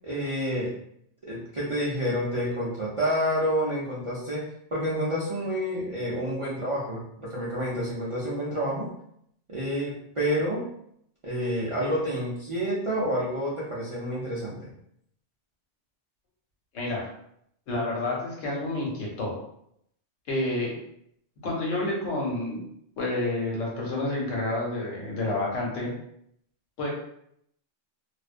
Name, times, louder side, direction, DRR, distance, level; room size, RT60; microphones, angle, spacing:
voice 1, 0.0-0.7 1.3-8.9 9.5-10.7 11.2-14.7, equal, 55° right, -8 dB, 0.3 m, -29 dB
voice 2, 16.7-17.1 17.7-19.4 20.3-20.8 21.4-22.6 23.0-25.9 26.8-26.9, left 2 dB, 90° left, -3 dB, 1.2 m, -29 dB
2.4 x 2.1 x 2.4 m, 0.72 s
omnidirectional pair, 1.2 m